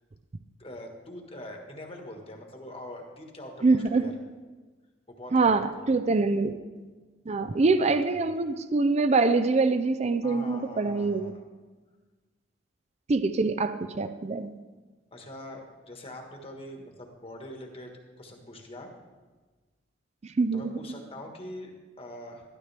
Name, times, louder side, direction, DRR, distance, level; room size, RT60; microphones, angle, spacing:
voice 1, 0.6-4.1 5.1-5.9 7.5-8.2 10.2-11.4 15.1-18.9 20.5-22.4, left 1 dB, 30° left, 3 dB, 1.4 m, -43 dB
voice 2, 3.6-4.1 5.3-6.6 7.3-11.3 13.1-14.5 20.4-20.7, right 3 dB, 35° right, 11 dB, 0.4 m, -24 dB
12.5 x 12.5 x 3.4 m, 1.3 s
head